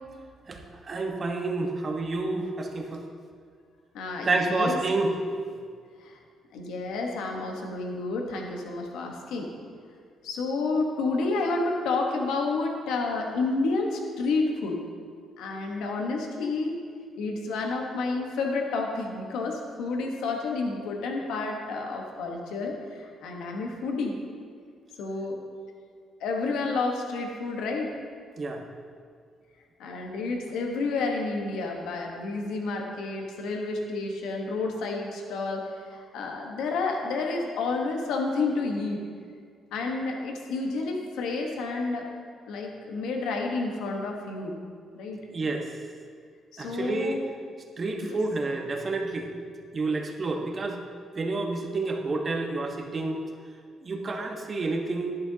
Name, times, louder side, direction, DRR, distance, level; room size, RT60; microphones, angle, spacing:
voice 1, 0.5-3.0 4.2-5.1 28.4-28.6 45.3-45.7 46.6-47.2 47.8-49.3 49.7-50.8 51.2-53.2 53.8-55.2, right 3 dB, 40° right, 2 dB, 1.2 m, -29 dB
voice 2, 3.9-4.8 6.0-6.2 6.5-9.5 10.2-14.8 15.4-16.8 17.2-24.2 25.0-25.4 26.2-27.9 29.8-39.0 39.7-42.1 42.5-44.6 44.9-45.2 46.5-47.3 48.0-48.2, left 3 dB, 85° left, 1 dB, 1.2 m, -30 dB
11.0 x 11.0 x 2.8 m, 2.1 s
cardioid pair, 90°, 0 cm